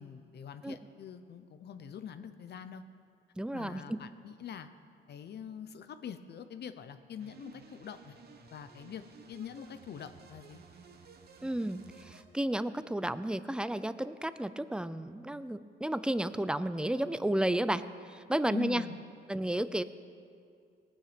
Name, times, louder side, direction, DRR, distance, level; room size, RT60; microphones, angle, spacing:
voice 1, 0.0-2.8 3.5-4.7 5.1-8.1 8.5-9.0 9.3-10.6 18.5-19.0, left 8 dB, 55° left, 10 dB, 0.8 m, -44 dB
voice 2, 3.4-4.0 11.4-18.8 19.3-19.8, right 1 dB, 5° right, 13 dB, 0.5 m, -32 dB
sound 1, 7.2-12.2, right 5 dB, 50° right, 1.3 m, -55 dB
18.5 x 9.0 x 5.1 m, 2.3 s
cardioid pair, 90°, 20 cm